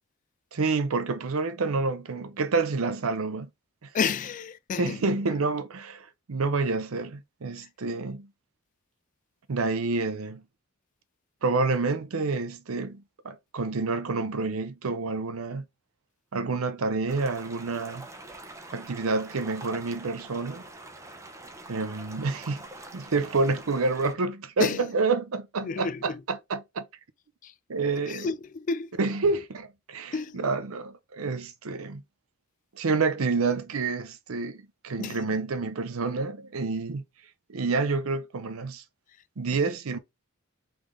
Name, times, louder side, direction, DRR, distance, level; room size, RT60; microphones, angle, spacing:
voice 1, 0.5-3.5 3.8-3.9 4.8-8.3 9.5-10.4 11.4-15.6 16.3-18.1 18.7-20.6 21.7-22.6 22.9-26.1 26.5-26.8 27.7-28.3 29.0-32.0 32.7-37.0 37.5-38.8 39.4-40.0, right 3 dB, 90° right, 0.7 m, -28 dB
voice 2, 3.9-5.4 7.6-7.7 24.6-24.9 25.6-26.2 27.4-27.6 28.0-29.0 30.1-30.5 35.0-35.4 39.1-39.2 39.5-39.6, left 5 dB, 35° left, 0.3 m, -32 dB
sound 1, 17.1-24.1, right 2 dB, 15° right, 0.6 m, -45 dB
3.8 x 3.3 x 3.5 m
head